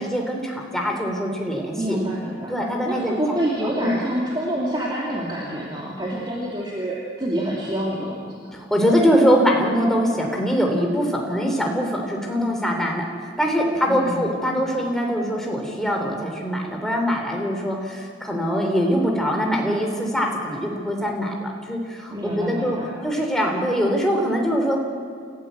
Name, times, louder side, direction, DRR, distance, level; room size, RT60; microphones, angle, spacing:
voice 1, 0.0-2.0 2.5-3.1 3.6-4.0 8.5-22.8 23.0-24.8, equal, ahead, 0 dB, 3.4 m, -23 dB
voice 2, 1.8-2.5 2.8-8.3 13.9-14.3 22.1-23.0, right 1 dB, 25° right, -4 dB, 2.7 m, -27 dB
28.5 x 15.0 x 8.1 m, 2.1 s
head